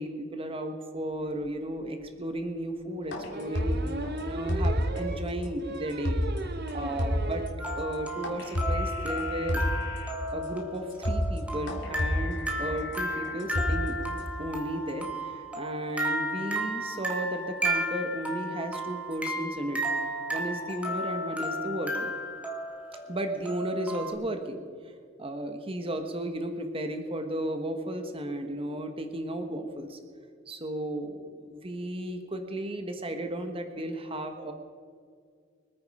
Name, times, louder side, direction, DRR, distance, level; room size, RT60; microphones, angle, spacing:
voice 1, 0.0-3.8 4.2-6.2 6.7-7.4 7.8-9.6 10.3-14.0 14.4-19.8 20.3-22.1 23.1-24.6 25.2-30.0 30.5-34.5, right 1 dB, 30° right, 6 dB, 1.4 m, -34 dB
sound 1, 1.5-1.6 2.0-2.1 3.3-7.6 8.0-8.1 8.3-8.4 8.6-8.9, right 2 dB, 55° right, 1.1 m, -38 dB
sound 2, 3.1-5.0 5.4-5.5 5.9-6.4 6.7-6.8 7.0-7.5 8.2-10.1 10.5-10.6 10.9-11.4 11.7-14.2, equal, 65° left, 2.6 m, -30 dB
sound 3, 7.6-24.1, equal, 5° right, 1.8 m, -34 dB
24.5 x 9.5 x 4.9 m, 2.1 s
head